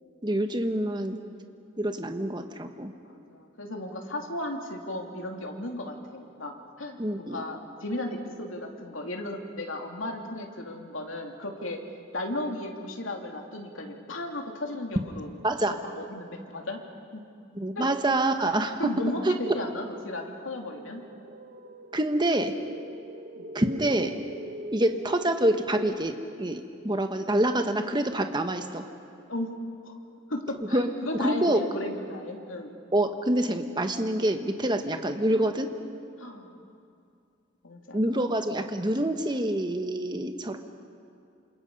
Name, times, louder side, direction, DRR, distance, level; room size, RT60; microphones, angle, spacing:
voice 1, 0.2-1.2 1.8-2.9 7.0-7.4 15.4-15.7 17.5-19.3 21.9-22.5 23.5-24.2 24.7-28.8 30.7-30.9 31.2-31.6 32.9-35.7 37.9-40.6, right 1 dB, 20° right, 6 dB, 1.3 m, -26 dB
voice 2, 3.0-11.8 12.1-15.3 16.0-16.8 17.1-17.2 17.8-17.9 18.8-21.0 23.4-23.6 29.3-29.6 29.8-29.9 30.3-32.8 36.2-36.6 37.6-38.2 40.3-40.6, left 1 dB, 85° left, 2 dB, 2.7 m, -35 dB
sound 1, 20.9-25.9, right 1 dB, 45° right, 1.0 m, -41 dB
28.0 x 27.5 x 5.5 m, 2.5 s
head